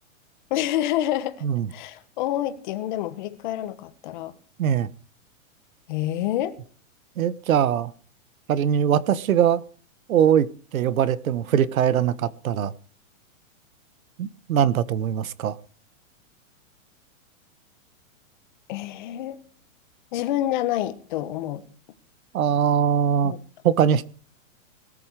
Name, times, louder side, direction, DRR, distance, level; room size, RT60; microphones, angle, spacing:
voice 1, 0.5-1.4 1.7-4.3 5.9-6.6 18.7-19.4 20.1-21.6 23.2-23.4, left 13 dB, 35° left, 1.5 m, -27 dB
voice 2, 7.2-7.9 8.5-9.6 10.1-10.5 10.7-12.7 14.2-15.6 22.3-23.3 23.6-24.1, right 9 dB, 85° right, 1.2 m, -21 dB
19.0 x 11.0 x 4.8 m
supercardioid pair, 175°, 40 cm